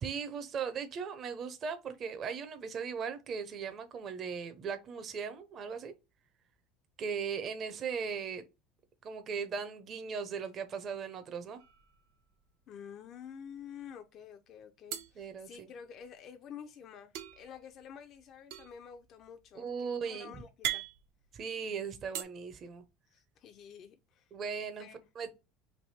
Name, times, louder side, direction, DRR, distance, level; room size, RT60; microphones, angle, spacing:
voice 1, 0.0-5.9 7.0-8.4 9.0-11.6 15.2-15.7 19.5-20.3 21.3-22.8 24.3-24.9 25.2-25.3, right 6 dB, 40° right, 0.6 m, -38 dB
sound 1, 11.6-12.5 12.8-13.0 13.2-14.0 14.9-16.2 17.1-22.2, right 11 dB, 75° right, 0.6 m, -42 dB
voice 2, 12.7-20.9 23.1-24.3 24.8-25.1, left 8 dB, 50° left, 0.4 m, -49 dB
3.3 x 2.6 x 4.1 m
supercardioid pair, 115°, 0 cm